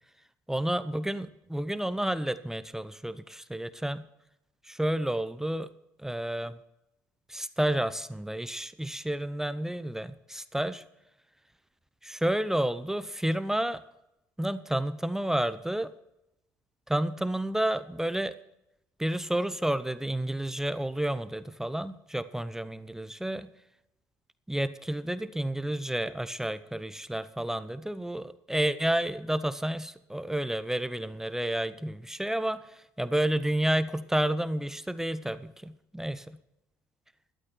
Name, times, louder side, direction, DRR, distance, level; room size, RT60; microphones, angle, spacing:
voice 1, 0.5-4.1 4.7-5.7 6.0-6.6 7.3-10.8 12.0-13.8 14.4-15.9 16.9-18.3 19.0-23.5 24.5-32.6 33.0-36.4, right 1 dB, 5° right, 14 dB, 0.7 m, -30 dB
13.0 x 12.0 x 4.5 m, 0.85 s
hypercardioid pair, 65°, 7 cm